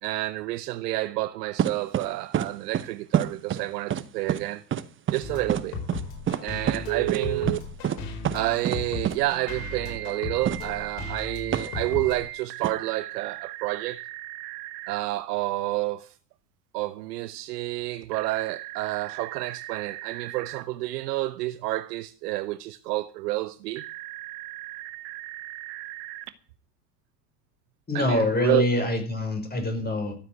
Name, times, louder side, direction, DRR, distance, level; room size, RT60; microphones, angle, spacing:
voice 1, 0.0-4.6 5.1-5.8 6.4-7.6 8.3-14.0 14.9-16.1 16.7-23.8 27.9-28.7, right 17 dB, 70° right, 0.8 m, -29 dB
sound 1, 1.6-2.1 2.3-2.5 2.7-2.9 3.1-3.6 3.9-4.0 4.3-4.4 4.7-4.8 5.1-5.2 5.5-5.6 5.9-6.0 6.3-6.4 6.7-6.8 7.1-7.2 7.5-7.6 7.8-8.0 8.2-8.4 8.6-8.8 9.0-9.2 10.5-10.6 11.5-11.7 12.6-12.7, right 9 dB, 25° right, 0.8 m, -26 dB
sound 2, 5.2-12.2, left 4 dB, 60° left, 4.8 m, -36 dB
Telephone, 6.9-7.6 9.5-15.0 18.1-20.6 23.8-26.3, right 17 dB, 55° right, 1.3 m, -37 dB
voice 2, 27.9-30.2, left 1 dB, 20° left, 5.4 m, -25 dB
13.0 x 7.6 x 8.0 m
hypercardioid pair, 90°, 49 cm